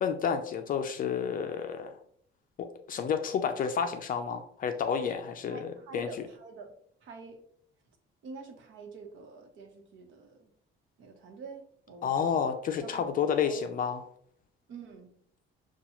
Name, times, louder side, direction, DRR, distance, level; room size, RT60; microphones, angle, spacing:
voice 1, 0.0-2.0 2.9-6.1 12.0-14.0, left 7 dB, 40° left, 6 dB, 0.4 m, -30 dB
voice 2, 5.5-6.7 7.0-7.4 8.2-10.5 11.0-12.4 12.8-13.6 14.7-15.1, right 4 dB, 65° right, 4 dB, 1.0 m, -46 dB
6.7 x 2.3 x 2.9 m, 0.65 s
cardioid pair, 150°, 21 cm